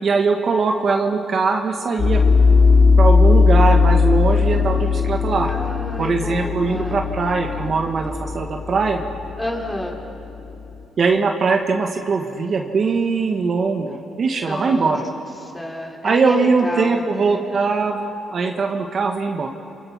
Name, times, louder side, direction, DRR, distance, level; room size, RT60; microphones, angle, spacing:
voice 1, 0.0-2.2 3.0-5.5 6.0-9.0 11.0-15.0 16.0-19.5, right 4 dB, 50° right, 3 dB, 1.7 m, -21 dB
sound 1, 2.0-10.7, left 4 dB, 55° left, 7.1 m, -18 dB
voice 2, 5.5-7.0 9.4-10.0 14.5-14.9 15.4-17.5, left 1 dB, 10° left, -1 dB, 4.1 m, -30 dB
28.0 x 24.0 x 5.8 m, 2.9 s
cardioid pair, 90°, 0 cm